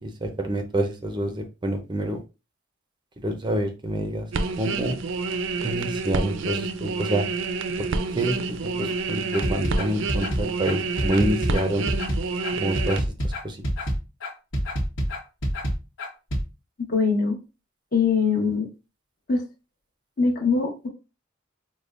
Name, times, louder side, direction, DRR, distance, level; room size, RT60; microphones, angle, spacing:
voice 1, 0.0-2.2 3.2-4.3 4.6-5.0 5.6-7.3 7.8-7.9 8.1-11.9 12.6-13.6, right 1 dB, 25° right, 5 dB, 0.4 m, -27 dB
sound 1, 4.3-13.0, right 4 dB, 80° right, 0.4 m, -28 dB
sound 2, 9.3-16.4, equal, 80° left, 1.1 m, -27 dB
voice 2, 16.9-17.4 17.9-18.7 19.3-19.4 20.2-20.9, left 5 dB, 50° left, -1 dB, 1.1 m, -22 dB
5.0 x 2.1 x 2.4 m, 0.30 s
head